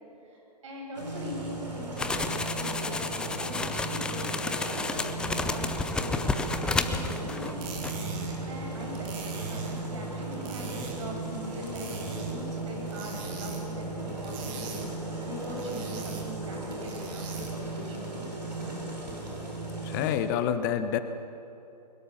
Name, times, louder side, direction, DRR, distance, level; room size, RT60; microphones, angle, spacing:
voice 1, 0.3-7.6 8.5-9.1 9.5-14.9 15.3-18.3 18.6-19.0, equal, 45° right, 0 dB, 7.4 m, -41 dB
sound 1, 0.9-20.2, right 2 dB, 80° right, 7.6 m, -36 dB
sound 2, 2.0-7.6 7.8-8.0, left 3 dB, 5° left, 0.6 m, -31 dB
sound 3, 7.4-17.7, right 4 dB, 25° right, 3.0 m, -43 dB
voice 2, 19.8-21.0, left 9 dB, 30° left, 11 dB, 1.1 m, -27 dB
22.0 x 20.5 x 7.3 m, 2.8 s
figure-of-eight pair, 125°, 21 cm